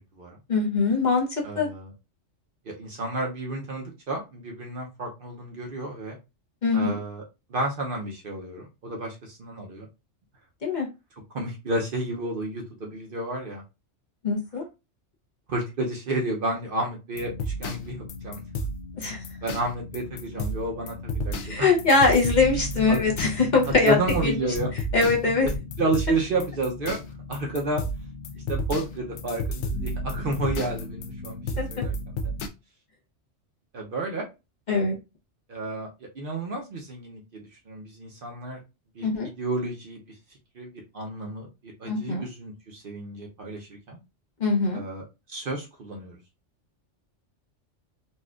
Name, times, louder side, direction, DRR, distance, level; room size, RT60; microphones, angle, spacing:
voice 1, 0.5-1.3 1.6-1.7 6.6-7.0 10.6-10.9 14.2-14.6 19.0-19.2 21.4-24.5 24.9-25.5 31.6-31.7 34.7-35.0 39.0-39.3 41.9-42.2 44.4-44.8, left 4 dB, 45° left, -1 dB, 0.9 m, -22 dB
voice 2, 1.4-1.9 2.7-6.2 6.7-7.2 7.5-9.9 11.3-13.6 15.5-18.4 19.4-21.7 22.9-23.0 23.7-24.7 25.8-27.0 27.3-27.8 28.5-32.0 32.2-32.3 33.7-34.3 35.5-38.6 39.0-39.1 39.4-40.0 40.6-44.0 44.7-45.0 45.3-46.2, right 2 dB, 55° right, 1 dB, 0.8 m, -31 dB
sound 1, 17.1-32.5, left 1 dB, 75° left, 0.9 m, -33 dB
4.2 x 2.3 x 2.3 m, 0.26 s
omnidirectional pair, 1.2 m